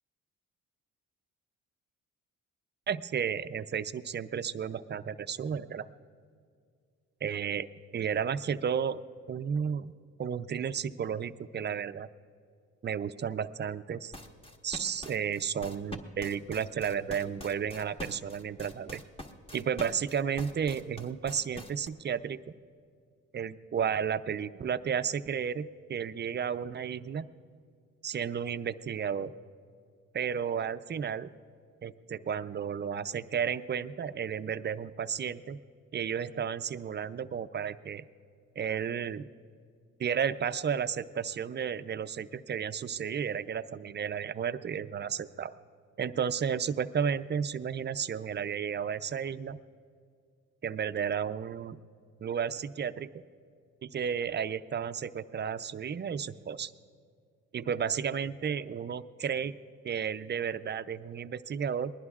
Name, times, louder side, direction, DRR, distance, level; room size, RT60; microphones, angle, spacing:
voice 1, 2.9-5.9 7.2-9.0 9.3-9.9 10.2-12.1 12.8-14.1 14.6-19.0 19.5-22.4 23.3-27.3 28.0-29.3 30.1-31.3 31.8-35.6 35.9-38.0 38.6-39.3 40.0-45.5 46.0-49.6 50.6-51.8 52.2-53.2 53.8-56.7 57.5-59.6 59.8-61.9, right 7 dB, 35° right, 12 dB, 0.5 m, -33 dB
sound 1, 14.1-21.9, left 1 dB, 20° left, 1.4 m, -44 dB
27.5 x 20.5 x 2.4 m, 2.2 s
cardioid pair, 90°, 30 cm